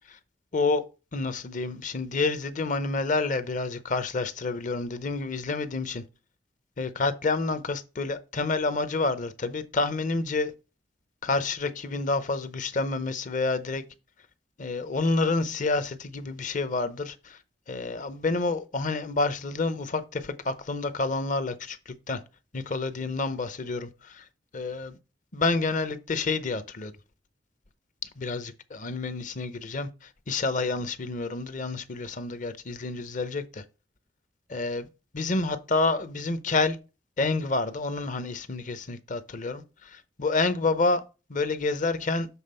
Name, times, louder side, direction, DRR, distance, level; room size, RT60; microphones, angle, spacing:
voice 1, 1.1-6.0 6.8-10.5 11.2-13.8 14.6-17.4 17.7-22.2 22.5-24.2 24.5-25.0 25.3-26.9 28.2-33.6 34.5-34.9 35.1-36.8 37.2-41.0 41.3-42.3, left 3 dB, 45° left, 0.7 m, -28 dB
7.1 x 3.6 x 5.5 m
head